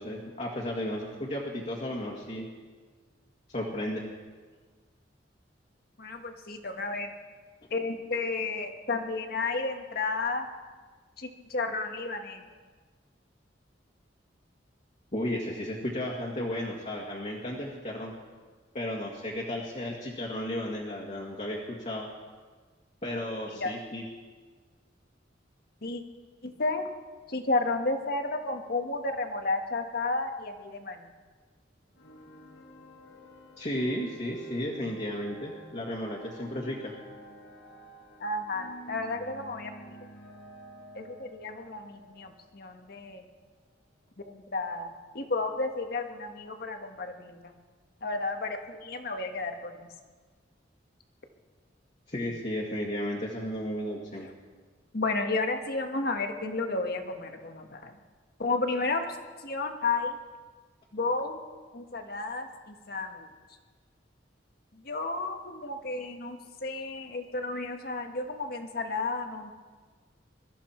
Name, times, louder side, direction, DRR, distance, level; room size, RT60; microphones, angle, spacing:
voice 1, 0.0-2.5 3.5-4.0 15.1-18.1 18.7-21.6 21.8-22.1 23.0-24.0 33.6-36.9 52.1-54.3, left 1 dB, 40° left, -2 dB, 1.9 m, -34 dB
voice 2, 6.0-7.1 7.7-10.5 11.2-12.4 23.6-23.7 25.8-26.0 26.4-26.9 27.3-31.1 38.2-40.0 40.9-43.2 44.3-47.5 48.0-49.9 54.9-58.0 58.4-59.2 59.4-60.2 60.9-61.4 61.7-63.3 64.8-69.5, left 3 dB, 55° left, 5 dB, 1.5 m, -32 dB
sound 1, 31.9-43.2, right 1 dB, 75° left, 1.8 m, -49 dB
22.0 x 13.5 x 4.5 m, 1.5 s
head